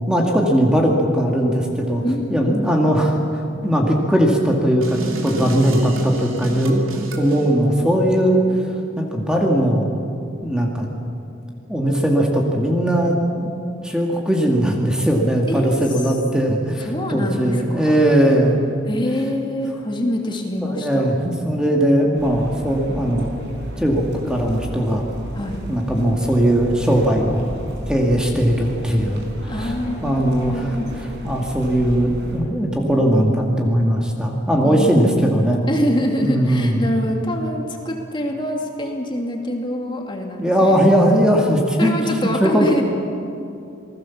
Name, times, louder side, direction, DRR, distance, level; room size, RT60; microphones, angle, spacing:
voice 1, 0.1-2.0 2.3-8.4 9.0-9.9 10.4-10.9 11.7-18.6 20.6-23.4 23.8-25.0 25.7-27.4 27.9-29.7 30.0-30.7 31.2-35.6 36.2-36.8 40.4-41.9 42.2-42.8, equal, 5° right, 0 dB, 2.2 m, -19 dB
voice 2, 2.0-2.6 15.5-15.8 16.9-18.0 18.9-21.2 25.3-25.6 29.5-30.9 34.6-35.3 35.7-40.8 41.0-41.2 41.8-42.8, left 1 dB, 25° left, 2 dB, 2.5 m, -25 dB
sound 1, 4.8-7.4, right 1 dB, 85° right, 3.0 m, -29 dB
sound 2, 22.1-32.4, equal, 60° right, 4.8 m, -33 dB
28.0 x 19.5 x 7.3 m, 2.6 s
head